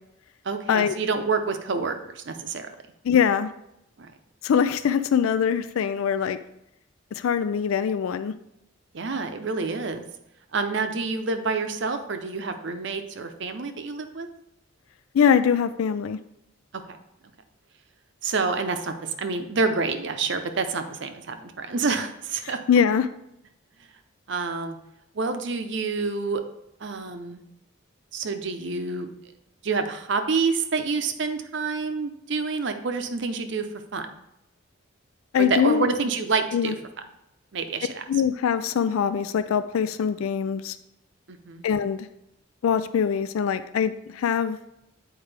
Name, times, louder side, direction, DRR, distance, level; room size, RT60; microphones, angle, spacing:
voice 1, 0.4-2.7 4.0-4.1 8.9-10.0 10.5-14.3 16.7-17.0 18.2-22.6 24.3-24.8 25.1-26.4 26.8-27.4 28.1-29.1 29.6-34.1 35.4-36.8 37.5-38.0 41.3-41.6, right 4 dB, 60° right, 7 dB, 0.6 m, -28 dB
voice 2, 3.0-3.5 4.4-6.4 7.1-8.3 15.1-16.2 22.7-23.1 35.3-35.9 36.5-36.7 38.1-40.8 41.6-42.1 42.6-44.6, left 7 dB, 85° left, 12 dB, 0.3 m, -23 dB
8.8 x 4.7 x 3.3 m, 0.83 s
head